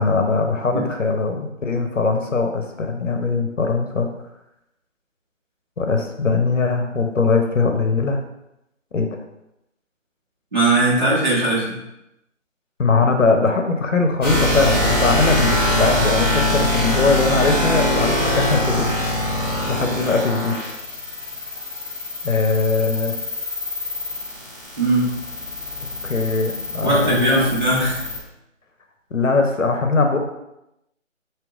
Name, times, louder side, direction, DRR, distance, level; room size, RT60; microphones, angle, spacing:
voice 1, 0.0-4.1 5.8-8.2 8.9-9.1 12.8-20.6 22.2-23.2 26.0-27.5 29.1-30.2, left 4 dB, 70° left, 4 dB, 0.8 m, -21 dB
voice 2, 10.5-11.8 24.8-25.1 26.8-28.0, right 1 dB, 35° right, -8 dB, 1.6 m, -19 dB
sound 1, 14.2-28.2, left 1 dB, 20° right, 1.3 m, -23 dB
7.1 x 2.9 x 2.4 m, 0.87 s
figure-of-eight pair, 175°, 39 cm